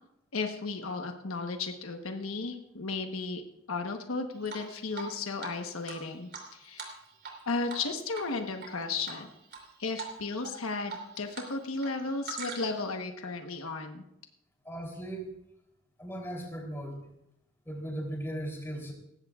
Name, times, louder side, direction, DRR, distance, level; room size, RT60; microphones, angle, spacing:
voice 1, 0.3-3.4 3.7-7.0 7.5-9.3 9.8-14.0, left 3 dB, 85° left, 5 dB, 1.2 m, -34 dB
Drip, 4.5-5.1 5.4-5.5 5.9-7.4 7.7-7.9 8.1-8.7 9.1-9.6 10.0-10.1 10.4-11.5 11.8-12.9, right 5 dB, 50° right, 3.2 m, -42 dB
voice 2, 14.6-15.3 16.0-17.0 17.6-18.9, right 1 dB, 10° left, 0 dB, 3.4 m, -37 dB
18.5 x 15.5 x 2.4 m, 0.81 s
head